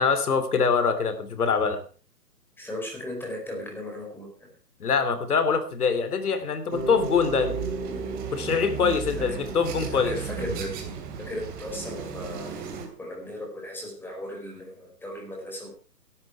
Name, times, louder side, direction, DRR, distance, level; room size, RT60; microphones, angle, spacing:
voice 1, 0.0-1.8 4.8-7.6 8.3-10.1, left 5 dB, 65° left, 11 dB, 3.1 m, -24 dB
voice 2, 2.6-4.3 9.9-10.7 11.2-12.5 13.0-15.7, left 1 dB, 5° left, 0 dB, 4.6 m, -36 dB
sound 1, 6.7-12.9, right 6 dB, 20° right, 2.6 m, -35 dB
Bass guitar, 6.7-10.7, right 2 dB, 35° right, 6.8 m, -36 dB
17.5 x 12.5 x 4.6 m, 0.39 s
hypercardioid pair, 145°, 49 cm